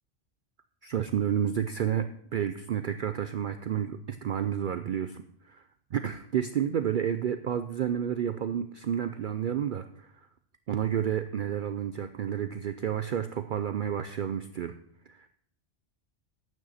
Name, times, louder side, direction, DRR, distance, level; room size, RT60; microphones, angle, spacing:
voice 1, 0.8-5.6 5.9-10.1 10.7-14.8 15.1-15.3, right 9 dB, 60° right, 9 dB, 0.6 m, -30 dB
11.5 x 8.9 x 4.1 m, 0.72 s
omnidirectional pair, 1.2 m